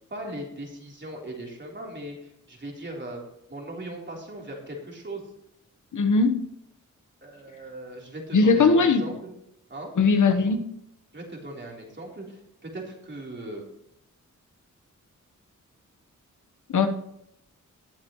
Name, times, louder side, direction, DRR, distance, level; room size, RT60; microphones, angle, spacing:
voice 1, 0.1-3.2 3.5-5.2 7.2-9.3 9.7-9.9 11.1-13.6, right 1 dB, 35° right, -2 dB, 3.7 m, -38 dB
voice 2, 5.9-6.4 8.3-9.0 10.0-10.6 16.7-16.9, left 4 dB, 75° left, 7 dB, 1.2 m, -19 dB
19.5 x 7.4 x 3.1 m, 0.75 s
wide cardioid pair, 90°, 31 cm